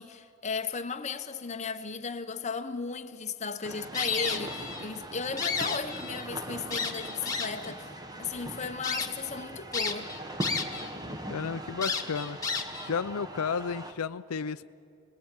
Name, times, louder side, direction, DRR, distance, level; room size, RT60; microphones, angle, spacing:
voice 1, 0.0-7.9 8.2-10.1, left 5 dB, 30° left, 0.8 m, -35 dB
sound 1, 3.6-13.9, right 1 dB, 20° right, 1.3 m, -41 dB
sound 2, 3.9-4.9 5.2-6.3 6.7-7.7 8.3-8.4 8.8-9.1 9.7-10.9 11.2-11.3 11.8-12.9, left 4 dB, 15° left, 1.6 m, -32 dB
voice 2, 11.3-12.4 12.8-14.6, left 6 dB, 85° left, 0.5 m, -32 dB
26.5 x 20.5 x 9.0 m
head